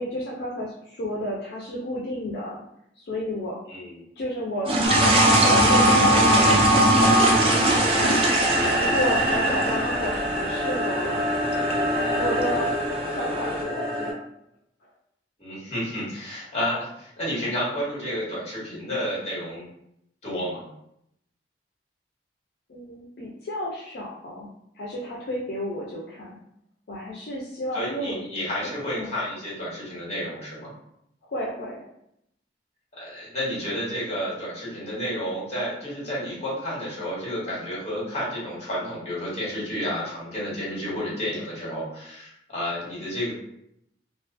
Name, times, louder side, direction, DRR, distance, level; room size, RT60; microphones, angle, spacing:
voice 1, 0.0-2.6 3.0-3.6 4.2-4.7 5.4-8.1 8.7-11.2 12.2-12.7 13.1-14.2 22.7-24.5 24.7-26.4 26.9-28.2 28.6-29.1 31.2-31.8, equal, 60° left, -4 dB, 0.4 m, -31 dB
sound 1, 4.7-13.6, right 2 dB, 30° right, 0.4 m, -25 dB
sound 2, 4.8-14.1, equal, 65° right, 0.9 m, -22 dB
voice 2, 15.4-19.7 20.2-20.6 27.7-30.7 32.9-43.3, equal, 35° left, -6 dB, 1.2 m, -31 dB
2.3 x 2.3 x 2.5 m, 0.76 s
head